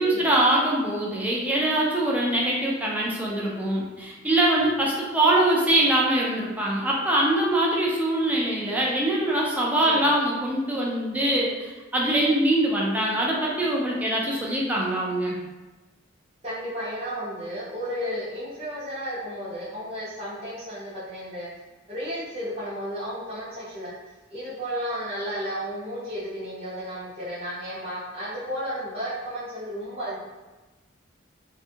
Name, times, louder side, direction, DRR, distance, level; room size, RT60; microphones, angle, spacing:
voice 1, 0.0-15.4, right 1 dB, 10° right, -4 dB, 0.4 m, -23 dB
voice 2, 16.4-21.5 21.9-23.9 24.3-30.2, equal, 30° right, -13 dB, 0.8 m, -33 dB
2.6 x 2.3 x 2.7 m, 1.2 s
head